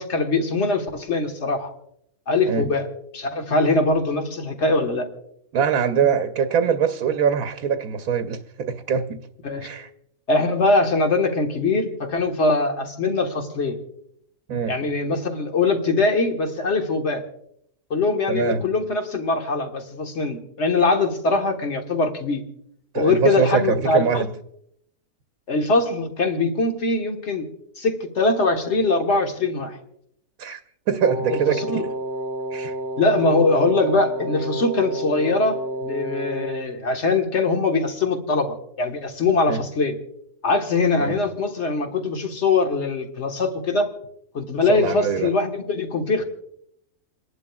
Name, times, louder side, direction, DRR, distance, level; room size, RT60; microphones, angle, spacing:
voice 1, 0.0-1.7 2.3-2.9 3.1-5.1 9.4-9.7 10.3-13.8 14.7-17.2 17.9-22.4 22.9-24.2 25.5-27.5 27.8-29.8 31.3-31.8 33.0-39.9 40.4-43.9 44.3-46.2, left 3 dB, 50° left, 1.6 m, -22 dB
voice 2, 5.5-9.2 9.6-9.9 14.5-14.8 18.3-18.6 22.9-24.3 30.4-30.6 30.9-31.9 32.5-32.8 39.5-39.6 41.0-41.2 44.7-45.3, right 7 dB, 75° right, 1.2 m, -23 dB
Wind instrument woodwind instrument, 31.0-36.7, right 1 dB, 15° left, 1.7 m, -30 dB
29.0 x 11.0 x 2.3 m
omnidirectional pair, 1.6 m